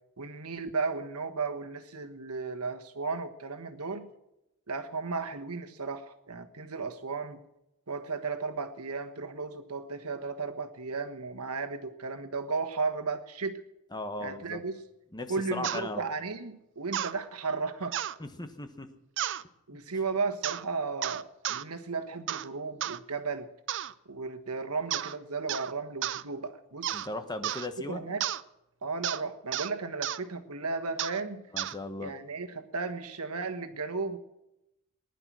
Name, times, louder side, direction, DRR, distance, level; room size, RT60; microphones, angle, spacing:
voice 1, 0.2-4.1 4.7-7.4 7.9-13.6 14.2-14.8 15.3-18.0 19.7-23.5 24.1-27.0 27.9-28.2 28.8-31.4 32.0-34.2, right 4 dB, 85° right, 8 dB, 1.4 m, -34 dB
voice 2, 13.9-14.6 15.1-16.1 18.2-18.9 26.9-28.0 31.5-32.1, left 2 dB, 20° left, 8 dB, 1.2 m, -37 dB
sound 1, 15.6-15.8 16.9-17.1 17.9-18.2 19.2-19.4 20.4-20.6 21.0-21.6 22.3-22.5 22.8-23.0 23.7-23.9 24.9-25.2 25.5-25.7 26.0-26.2 26.8-27.1 27.4-27.7 28.2-28.4 29.0-29.2 29.5-29.7 30.0-30.2 31.0-31.2 31.6-31.8, right 11 dB, 55° right, 0.5 m, -32 dB
19.5 x 11.0 x 6.2 m, 0.89 s
head